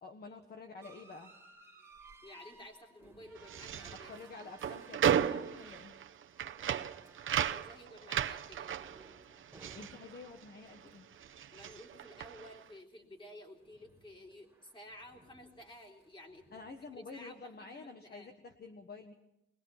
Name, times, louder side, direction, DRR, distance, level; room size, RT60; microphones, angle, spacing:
voice 1, 0.0-1.3 4.1-6.0 9.7-11.1 16.5-19.1, left 4 dB, 50° left, 4 dB, 1.5 m, -49 dB
sound 1, 0.8-13.2 13.6-17.2, right 3 dB, 10° right, 2.6 m, -60 dB
voice 2, 2.2-4.1 7.4-8.8 11.5-16.6 16.9-18.3, left 1 dB, 25° left, 1 dB, 3.7 m, -53 dB
sound 2, 3.4-10.9 11.1-12.6, right 9 dB, 70° right, 0.9 m, -35 dB
22.0 x 21.0 x 6.0 m, 0.85 s
wide cardioid pair, 160°, 21 cm